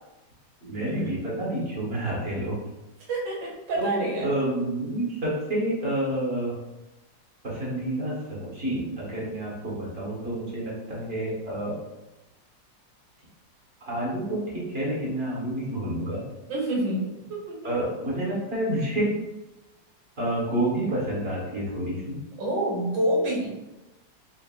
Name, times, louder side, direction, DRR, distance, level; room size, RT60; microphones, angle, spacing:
voice 1, 0.6-2.6 3.8-6.6 7.4-11.8 13.8-16.2 17.6-19.2 20.2-22.2, right 1 dB, 35° right, -6 dB, 1.3 m, -29 dB
voice 2, 3.1-4.3 16.5-17.0 17.3-17.5 22.4-23.5, right 1 dB, 75° right, -2 dB, 1.8 m, -27 dB
4.2 x 3.5 x 2.2 m, 1.0 s
omnidirectional pair, 2.0 m